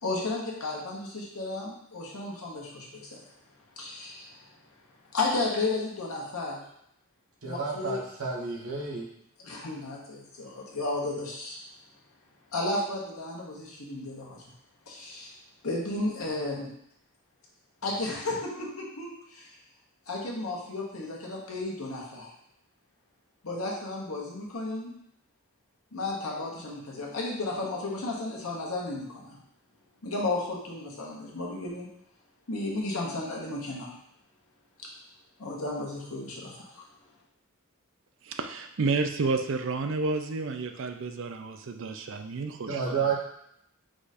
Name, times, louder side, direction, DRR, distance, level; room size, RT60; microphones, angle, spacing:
voice 1, 0.0-3.2 3.8-4.5 5.1-6.6 7.4-8.0 9.4-11.6 12.5-14.5 14.9-15.3 15.6-16.7 17.8-19.6 20.1-22.3 23.4-24.9 25.9-29.4 30.0-31.9 32.5-33.9 34.8-34.9 35.4-36.8, left 2 dB, 85° left, -2 dB, 1.2 m, -33 dB
voice 2, 7.4-9.1 42.6-43.1, right 5 dB, 85° right, -2 dB, 1.1 m, -30 dB
voice 3, 38.3-42.9, right 3 dB, 60° right, 6 dB, 0.4 m, -30 dB
5.0 x 2.5 x 4.1 m, 0.73 s
head